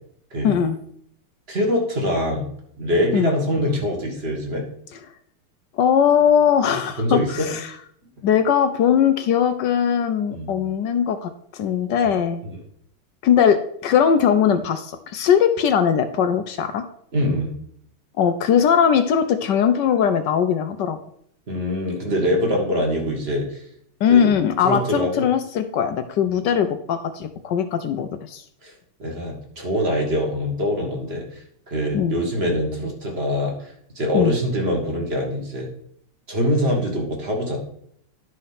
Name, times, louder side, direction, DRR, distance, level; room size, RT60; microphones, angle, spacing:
voice 1, 0.4-0.8 3.1-3.3 5.7-7.7 8.2-12.4 13.2-16.8 18.2-21.0 24.0-28.4 31.9-32.1 34.1-34.3, left 8 dB, 70° left, 8 dB, 1.1 m, -20 dB
voice 2, 1.5-2.5 2.8-4.7 6.7-7.5 10.3-10.5 12.4-12.6 17.1-17.5 21.5-23.6 24.1-24.3 24.6-25.2 28.6-28.7 29.0-35.7 36.3-37.6, equal, 30° right, 1 dB, 2.0 m, -24 dB
11.0 x 4.3 x 5.7 m, 0.67 s
omnidirectional pair, 2.4 m